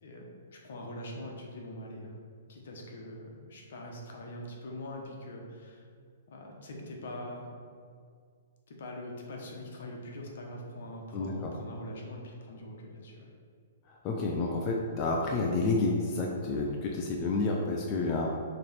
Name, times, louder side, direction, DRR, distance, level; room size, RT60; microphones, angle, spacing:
voice 1, 0.0-2.1 2.5-5.9 6.3-7.5 8.7-13.3, left 1 dB, 70° left, 0 dB, 1.3 m, -43 dB
voice 2, 11.1-11.5 13.9-18.3, left 3 dB, 30° left, -1 dB, 0.6 m, -30 dB
6.6 x 3.3 x 4.4 m, 2.1 s
hypercardioid pair, 140°, 0 cm